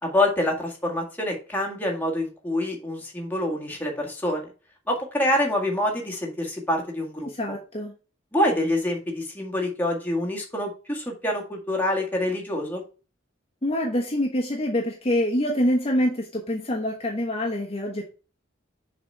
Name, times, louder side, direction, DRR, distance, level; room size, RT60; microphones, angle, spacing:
voice 1, 0.0-4.5 4.9-7.3 8.3-12.8, left 1 dB, 10° left, -1 dB, 1.8 m, -26 dB
voice 2, 7.2-7.9 13.6-18.1, left 1 dB, 30° left, -1 dB, 1.2 m, -25 dB
6.9 x 4.1 x 5.5 m, 0.35 s
head